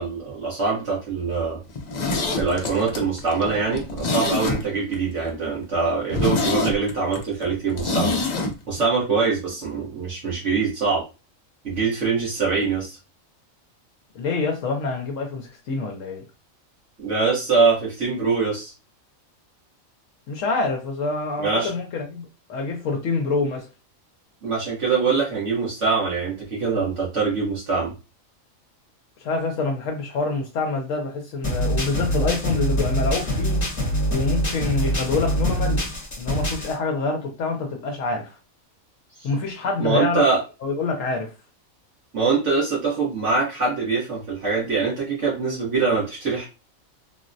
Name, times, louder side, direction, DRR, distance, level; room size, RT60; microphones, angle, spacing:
voice 1, 0.0-1.6 2.4-8.2 8.7-11.1 11.6-13.0 17.0-18.7 21.4-21.7 24.4-27.9 39.2-39.3 39.8-40.4 42.1-46.5, right 4 dB, 60° right, 1.4 m, -23 dB
Zipper (clothing), 1.7-5.0 5.3-5.4 5.7-5.8 6.1-8.5 8.8-8.9, left 3 dB, 55° left, 0.5 m, -25 dB
voice 2, 14.1-16.2 20.3-23.7 29.2-33.7 34.1-35.8 36.2-38.4 39.2-40.2 40.6-41.3, left 3 dB, 75° left, 0.9 m, -26 dB
sound 1, 31.4-36.7, equal, 30° left, 0.9 m, -24 dB
3.7 x 2.1 x 2.5 m
omnidirectional pair, 1.4 m